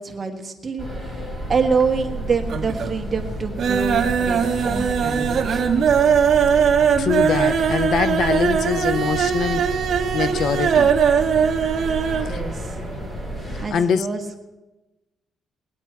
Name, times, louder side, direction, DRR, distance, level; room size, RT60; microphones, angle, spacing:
voice 1, 0.0-5.8 12.2-12.8 13.6-14.2, right 5 dB, 25° right, 1.4 m, -26 dB
sound 1, 0.8-13.7, right 1 dB, 15° left, 3.7 m, -31 dB
sound 2, 1.5-2.2 2.4-3.0 3.3-12.3 12.6-12.7 13.0-13.1, right 7 dB, 45° right, 1.2 m, -20 dB
sound 3, 3.7-11.8, right 3 dB, 5° right, 1.1 m, -40 dB
voice 2, 7.0-9.7 10.1-11.0 12.3-12.4 13.7-14.1, left 7 dB, 55° left, 0.5 m, -23 dB
20.0 x 9.4 x 4.6 m
cardioid pair, 155°, 0 cm